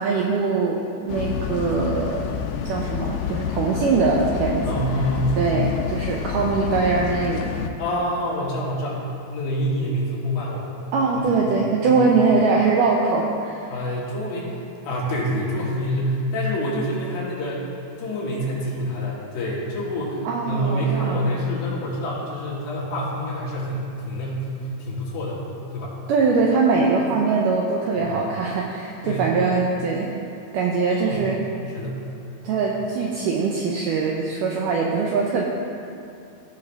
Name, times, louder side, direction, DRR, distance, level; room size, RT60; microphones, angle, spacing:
voice 1, 0.0-2.3 2.7-4.8 5.4-7.5 10.9-13.7 20.3-21.2 26.1-30.1 30.5-31.4 32.4-35.4, right 4 dB, 85° right, -1 dB, 1.9 m, -22 dB
sound 1, 1.1-7.7, left 7 dB, 90° left, 1.9 m, -28 dB
voice 2, 4.6-5.4 6.3-6.5 7.8-10.7 11.2-11.4 11.8-12.1 13.7-14.6 14.8-17.7 18.0-25.4 25.7-25.9 28.0-28.1 29.0-29.3 30.9-31.3 31.7-32.0, equal, 70° left, -6 dB, 3.4 m, -27 dB
16.5 x 5.7 x 3.4 m, 2.6 s
omnidirectional pair, 4.5 m